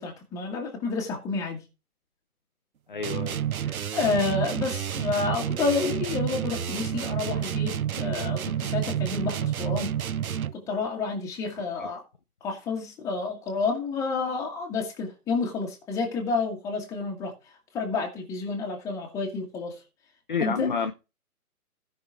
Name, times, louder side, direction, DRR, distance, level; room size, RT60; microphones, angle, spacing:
voice 1, 0.0-1.6 3.7-9.9 10.5-12.0 12.4-17.3 17.7-19.8 20.4-20.7, left 4 dB, 5° left, 1.5 m, -30 dB
voice 2, 2.9-3.4 20.3-20.9, left 5 dB, 35° left, 0.5 m, -28 dB
sound 1, 3.0-10.7, right 9 dB, 70° right, 0.7 m, -29 dB
16.0 x 5.7 x 3.5 m
figure-of-eight pair, 150°, 45 cm